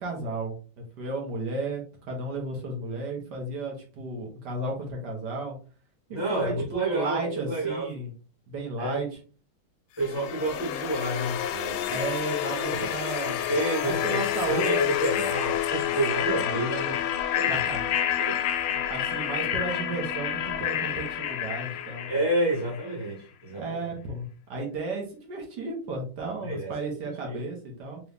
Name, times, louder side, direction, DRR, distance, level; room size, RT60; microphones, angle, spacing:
voice 1, 0.0-5.6 6.1-8.1 8.5-9.2 11.9-13.5 13.8-14.8 16.4-16.9 17.5-17.8 18.7-22.1 23.5-28.0, right 3 dB, 60° right, 1.5 m, -33 dB
voice 2, 6.1-7.9 8.8-9.0 10.0-12.0 12.5-12.9 13.2-17.0 17.3-17.5 18.2-18.4 22.1-23.9 26.4-26.7 27.0-27.4, right 1 dB, 20° left, 0.6 m, -30 dB
Mykonos Movements, 10.0-22.9, left 11 dB, 85° left, 1.4 m, -29 dB
3.7 x 3.0 x 3.3 m
omnidirectional pair, 2.3 m